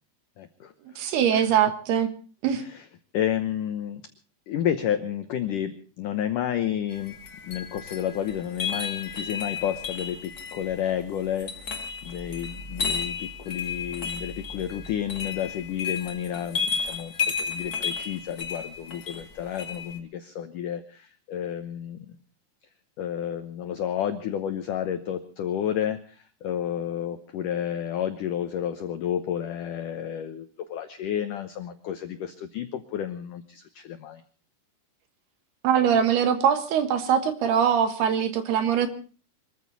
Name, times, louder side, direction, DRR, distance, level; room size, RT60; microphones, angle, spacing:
voice 1, 0.4-1.1 1.3-1.6 2.5-2.9 3.1-4.0 4.5-7.2 7.4-22.2 23.0-34.2, left 10 dB, 90° left, 8 dB, 1.8 m, -31 dB
voice 2, 1.0-2.1 2.4-2.6 35.6-38.9, right 8 dB, 70° right, 9 dB, 3.2 m, -22 dB
sound 1, 6.9-20.0, left 5 dB, 70° left, 0.8 m, -33 dB
24.5 x 14.5 x 4.1 m, 0.38 s
omnidirectional pair, 5.2 m